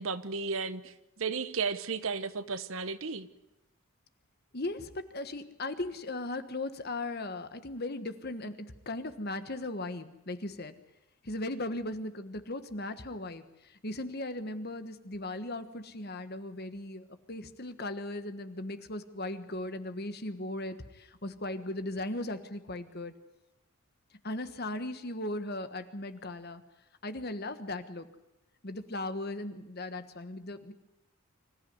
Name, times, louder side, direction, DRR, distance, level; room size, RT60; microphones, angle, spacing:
voice 1, 0.0-3.3, right 5 dB, 65° right, 13 dB, 1.1 m, -34 dB
voice 2, 4.5-10.7 11.2-23.1 24.2-26.6 27.0-28.1 28.6-30.7, left 2 dB, 45° left, 10 dB, 1.4 m, -37 dB
25.5 x 14.5 x 9.5 m, 0.95 s
head